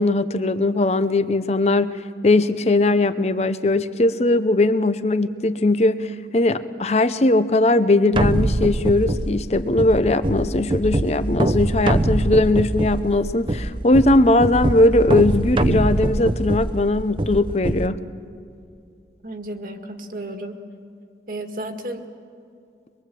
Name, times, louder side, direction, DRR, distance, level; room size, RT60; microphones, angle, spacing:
voice 1, 0.0-18.0, left 2 dB, 35° left, 12 dB, 0.7 m, -19 dB
sound 1, 8.1-17.9, right 1 dB, 30° right, 0.6 m, -23 dB
voice 2, 19.2-20.6 21.3-22.1, right 1 dB, 50° right, 5 dB, 1.8 m, -33 dB
24.0 x 22.5 x 7.6 m, 2.5 s
head